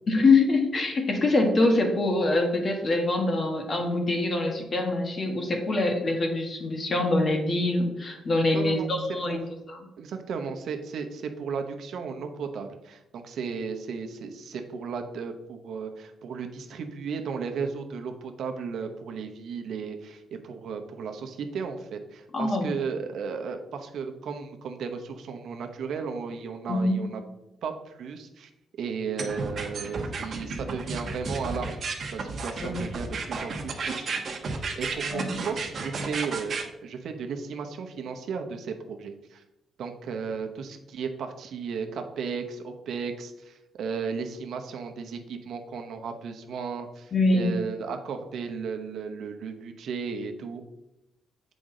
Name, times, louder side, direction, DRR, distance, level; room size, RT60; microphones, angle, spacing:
voice 1, 0.1-9.4 9.7-9.8 22.3-22.7 26.7-26.9 32.6-32.8 35.1-35.2 47.1-47.6, left 2 dB, 40° left, 3 dB, 1.4 m, -24 dB
voice 2, 8.5-8.9 9.3-9.4 10.0-27.2 27.6-28.5 28.8-31.8 32.1-33.9 34.7-39.4 39.8-50.6, right 5 dB, 75° right, 5 dB, 0.9 m, -35 dB
sound 1, 29.2-36.6, right 4 dB, 50° right, 1.1 m, -32 dB
7.9 x 5.2 x 3.8 m, 0.90 s
cardioid pair, 120°, 0 cm